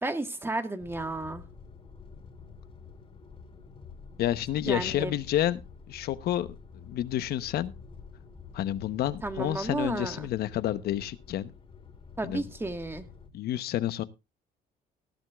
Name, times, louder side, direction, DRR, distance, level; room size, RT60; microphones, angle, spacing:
voice 1, 0.0-1.4 4.7-5.1 9.2-10.3 12.2-13.1, right 2 dB, 15° right, 1.7 m, -32 dB
sound 1, 0.8-13.3, left 5 dB, 35° left, 2.7 m, -48 dB
voice 2, 4.2-5.6 5.9-6.5 6.7-7.7 8.5-11.5 12.2-12.4 13.3-14.0, left 12 dB, 70° left, 1.0 m, -29 dB
18.5 x 11.0 x 2.4 m
cardioid pair, 110°, 17 cm